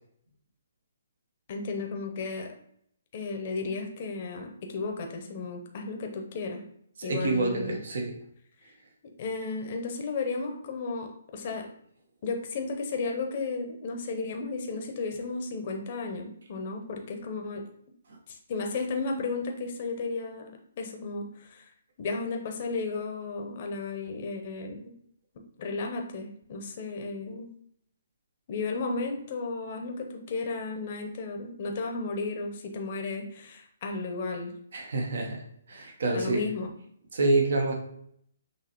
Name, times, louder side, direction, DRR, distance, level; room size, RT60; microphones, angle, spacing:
voice 1, 1.5-2.5 3.1-6.6 7.0-7.8 9.2-11.7 12.2-17.6 18.3-21.7 22.0-24.9 25.6-27.5 28.5-34.5 36.1-36.7, left 3 dB, 45° left, 3 dB, 0.8 m, -34 dB
voice 2, 7.0-8.1 34.7-35.4 35.7-36.4 37.1-37.8, right 2 dB, 65° right, 1 dB, 1.1 m, -27 dB
6.0 x 2.8 x 3.0 m, 0.67 s
hypercardioid pair, 140°, 0 cm